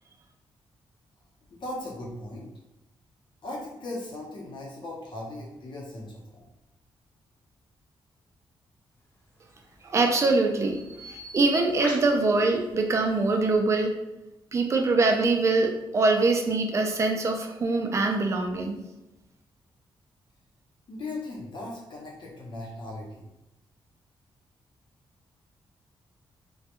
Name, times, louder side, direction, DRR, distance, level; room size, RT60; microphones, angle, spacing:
voice 1, 1.5-2.4 3.4-6.4 20.9-23.2, left 2 dB, 60° left, -3 dB, 0.8 m, -38 dB
Bird vocalization bird call bird song, 9.4-13.6, equal, 20° left, 0.7 m, -44 dB
voice 2, 9.8-10.8 11.1-13.9 14.5-18.8, right 3 dB, 30° right, 3 dB, 0.4 m, -23 dB
2.2 x 2.2 x 2.9 m, 0.93 s
wide cardioid pair, 135°, 9 cm